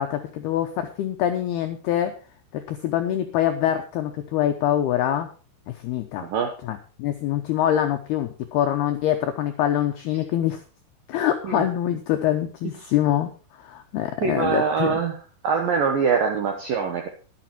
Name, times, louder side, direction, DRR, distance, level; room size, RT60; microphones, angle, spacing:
voice 1, 0.0-2.1 2.5-5.3 5.8-6.3 6.6-10.6 11.1-13.3 13.6-15.0, left 11 dB, 90° left, 6 dB, 2.2 m, -24 dB
voice 2, 6.2-6.5 11.4-11.6 14.2-15.2 15.4-17.1, right 6 dB, 75° right, 4 dB, 2.0 m, -23 dB
12.5 x 11.0 x 4.4 m, 0.35 s
omnidirectional pair, 5.8 m